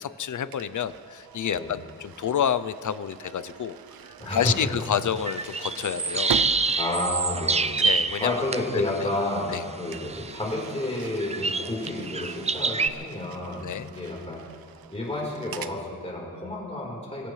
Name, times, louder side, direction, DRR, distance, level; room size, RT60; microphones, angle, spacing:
voice 1, 0.0-3.8 4.3-6.4 7.8-8.4 8.7-9.1 9.5-9.6 13.6-13.9, left 9 dB, 60° left, 14 dB, 0.6 m, -29 dB
sound 1, 0.5-7.5 7.7-8.1 9.9-15.8, right 9 dB, 90° right, 0.6 m, -42 dB
voice 2, 4.2-4.5 6.8-7.8 8.2-14.4 14.9-17.3, left 1 dB, 20° left, -4 dB, 3.9 m, -30 dB
sound 2, 5.2-12.9, right 4 dB, 20° right, 0.4 m, -27 dB
24.0 x 15.5 x 3.3 m, 2.1 s
wide cardioid pair, 180°, 35 cm